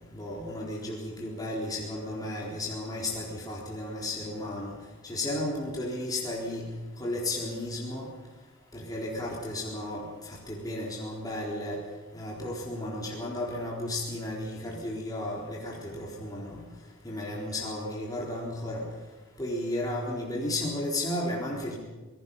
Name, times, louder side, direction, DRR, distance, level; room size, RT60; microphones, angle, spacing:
voice 1, 0.1-4.7 5.0-6.6 7.0-8.1 8.7-11.8 12.1-16.6 17.0-18.8 19.4-21.7, left 1 dB, 20° left, -4 dB, 4.0 m, -33 dB
27.5 x 19.0 x 5.6 m, 1.2 s
head